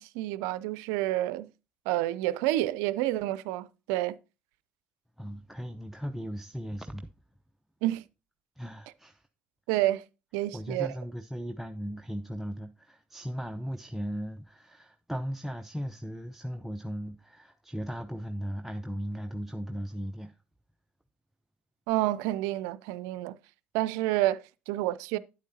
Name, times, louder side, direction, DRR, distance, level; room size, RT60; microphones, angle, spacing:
voice 1, 0.0-1.5 1.9-4.2 7.8-8.0 9.7-10.0 10.3-10.9 21.9-23.4 23.7-25.2, right 15 dB, 80° right, 0.4 m, -29 dB
voice 2, 5.2-7.1 8.6-9.3 10.5-20.3, equal, 5° right, 0.7 m, -37 dB
9.6 x 8.2 x 2.8 m
hypercardioid pair, 60°, 5 cm